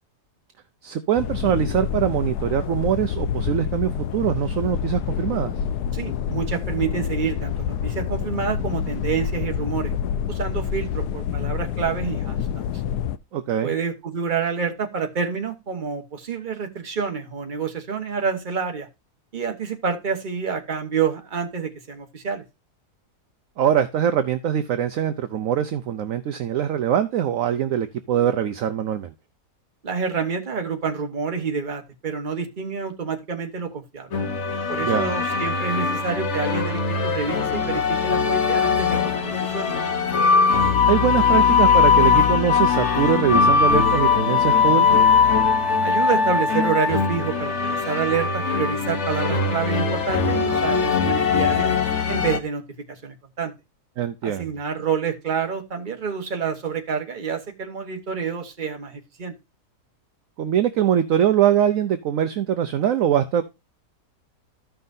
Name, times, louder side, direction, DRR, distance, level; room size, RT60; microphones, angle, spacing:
voice 1, 0.8-5.5 13.3-13.7 23.6-29.1 34.8-35.2 40.8-45.0 54.0-54.5 60.4-63.4, right 9 dB, 65° right, 9 dB, 0.9 m, -23 dB
sound 1, 1.2-13.2, left 8 dB, 80° left, 1.1 m, -27 dB
voice 2, 5.9-9.9 10.3-12.6 13.6-18.9 19.3-22.4 29.8-34.1 34.7-39.7 45.8-51.7 52.1-52.6 52.9-53.5 54.2-59.3, right 6 dB, 35° right, 5 dB, 1.2 m, -28 dB
sound 2, 34.1-52.4, left 5 dB, 50° left, 1.2 m, -20 dB
14.0 x 5.7 x 2.6 m, 0.24 s
omnidirectional pair, 1.7 m